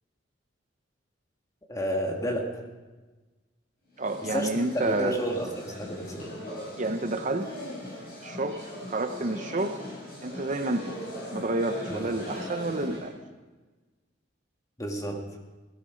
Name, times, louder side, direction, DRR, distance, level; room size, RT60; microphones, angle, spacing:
voice 1, 1.7-2.5 4.3-6.3 11.9-12.0 14.8-15.2, equal, 20° left, 2 dB, 1.9 m, -30 dB
sound 1, 3.9-13.1, left 1 dB, 55° left, 6.4 m, -40 dB
voice 2, 4.0-5.2 6.8-7.5 8.2-9.8 10.2-11.0 11.3-13.1, right 2 dB, 40° right, 7 dB, 0.8 m, -29 dB
16.5 x 13.0 x 5.1 m, 1.3 s
head